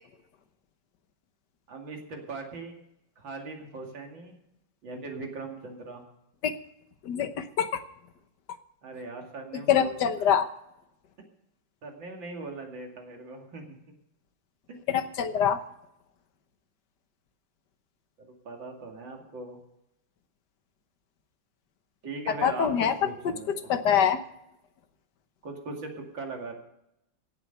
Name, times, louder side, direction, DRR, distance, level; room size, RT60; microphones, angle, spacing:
voice 1, 1.7-2.7 3.2-4.4 4.8-6.0 8.8-10.0 11.8-13.8 14.7-14.8 18.2-19.6 22.0-23.7 25.4-26.5, right 3 dB, 90° right, 2 dB, 3.2 m, -40 dB
voice 2, 9.7-10.5 14.9-15.6 22.4-22.9 23.5-24.2, left 8 dB, 65° left, 10 dB, 1.6 m, -24 dB
16.5 x 8.0 x 6.7 m, 0.83 s
omnidirectional pair, 2.0 m